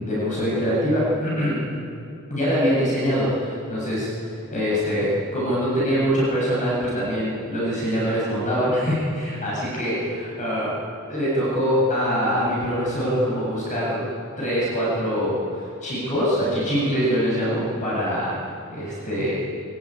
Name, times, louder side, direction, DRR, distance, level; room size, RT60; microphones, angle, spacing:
voice 1, 0.0-1.6 2.3-10.7 11.1-14.0 14.4-19.3, equal, 35° left, -6 dB, 8.0 m, -24 dB
24.5 x 24.0 x 9.3 m, 2.5 s
head